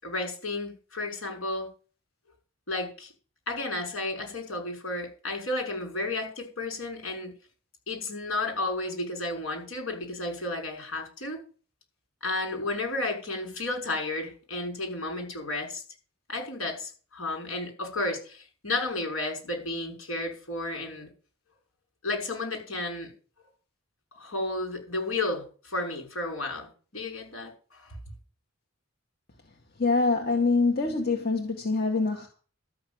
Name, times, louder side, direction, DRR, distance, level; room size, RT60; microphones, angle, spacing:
voice 1, 0.0-1.7 2.7-3.1 3.5-7.3 7.9-11.4 12.2-15.8 16.3-21.1 22.0-23.1 24.2-28.0, left 2 dB, 80° left, 6.4 m, -32 dB
voice 2, 29.8-32.3, left 3 dB, 50° left, 1.8 m, -25 dB
13.0 x 6.4 x 9.4 m
head